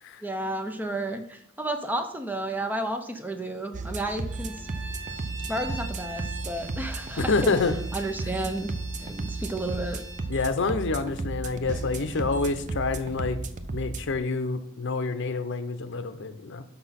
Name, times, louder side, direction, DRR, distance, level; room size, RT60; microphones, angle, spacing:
voice 1, 0.2-4.7 5.5-7.6 7.9-8.7 9.0-10.0, right 1 dB, 10° right, 6 dB, 0.8 m, -32 dB
sound 1, 3.7-14.2, right 3 dB, 35° right, 0.5 m, -34 dB
Bowed string instrument, 4.2-10.3, right 3 dB, 60° right, 1.7 m, -42 dB
voice 2, 7.2-7.7 10.3-13.4 13.7-16.6, left 3 dB, 60° left, 10 dB, 0.7 m, -27 dB
6.1 x 5.7 x 5.8 m, 0.70 s
head